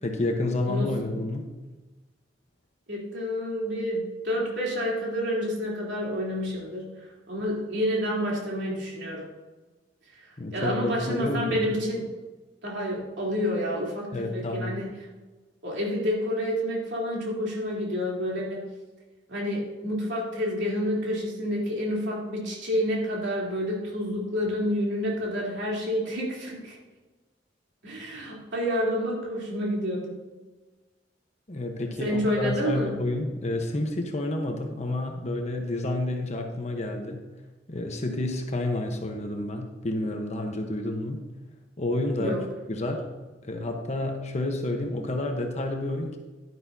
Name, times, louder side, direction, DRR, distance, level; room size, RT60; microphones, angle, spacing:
voice 1, 0.0-1.5 10.4-11.6 14.1-14.8 31.5-37.3 37.7-41.3 41.8-42.4 42.7-43.1 43.4-46.2, left 2 dB, 40° left, 3 dB, 1.1 m, -29 dB
voice 2, 2.9-9.3 10.1-12.1 12.6-14.9 15.6-18.7 19.3-26.8 27.8-30.2 32.0-33.0 42.2-42.5, equal, 75° right, -4 dB, 3.5 m, -29 dB
11.0 x 10.5 x 2.8 m, 1.2 s
head